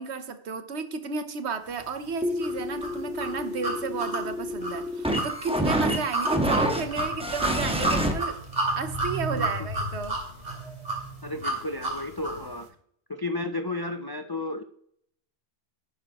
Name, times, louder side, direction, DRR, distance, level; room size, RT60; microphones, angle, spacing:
voice 1, 0.0-8.4 8.7-10.2, right 5 dB, 65° right, 10 dB, 1.2 m, -32 dB
sound 1, 2.2-8.1, equal, 5° right, 1.3 m, -28 dB
sound 2, 2.4-12.5, right 2 dB, 35° right, 2.7 m, -31 dB
voice 2, 11.2-12.7 13.1-14.6, left 2 dB, 35° left, 7 dB, 0.3 m, -32 dB
11.0 x 9.4 x 3.0 m, 0.67 s
omnidirectional pair, 1.2 m